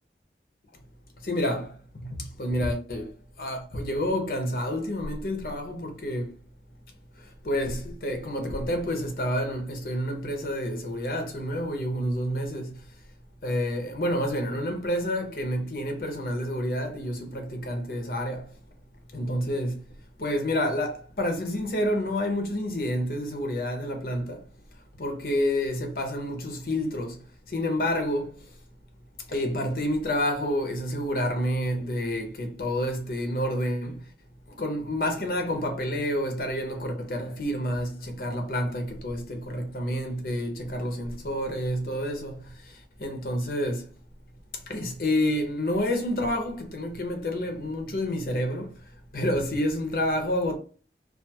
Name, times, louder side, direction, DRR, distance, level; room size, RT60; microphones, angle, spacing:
voice 1, 1.2-3.1 3.4-6.3 7.2-12.8 13.4-18.5 19.1-19.8 20.2-24.5 25.0-27.2 27.5-28.5 29.3-34.0 34.5-43.9 44.7-48.7 49.1-50.6, equal, 55° left, 0.7 m, -29 dB
2.4 x 2.3 x 2.8 m
head